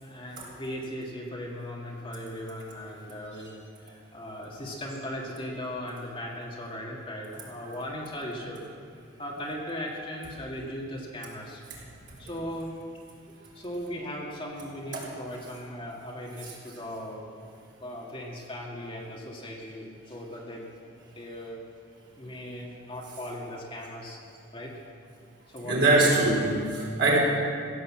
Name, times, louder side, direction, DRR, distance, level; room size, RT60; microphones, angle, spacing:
voice 1, 0.0-8.6 9.2-11.6 12.2-12.7 13.6-17.3 17.8-21.6 22.2-24.2 24.5-24.7 25.5-25.9, equal, 25° left, -3 dB, 2.0 m, -38 dB
voice 2, 25.6-27.2, right 2 dB, 60° right, -4 dB, 4.0 m, -23 dB
16.0 x 8.5 x 7.4 m, 2.5 s
head